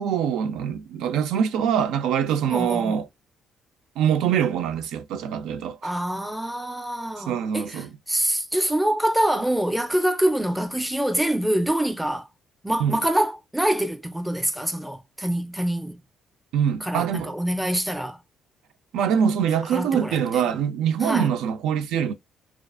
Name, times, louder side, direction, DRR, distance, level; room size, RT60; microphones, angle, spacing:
voice 1, 0.0-3.1 4.0-5.9 7.2-7.9 12.8-13.0 16.5-17.3 18.9-22.1, right 8 dB, 85° right, 0.4 m, -24 dB
voice 2, 2.5-3.0 5.8-12.3 12.6-16.0 16.8-18.2 19.7-20.2 21.0-21.3, right 1 dB, 5° right, 0.5 m, -25 dB
2.4 x 2.4 x 2.3 m
cardioid pair, 140°, 0 cm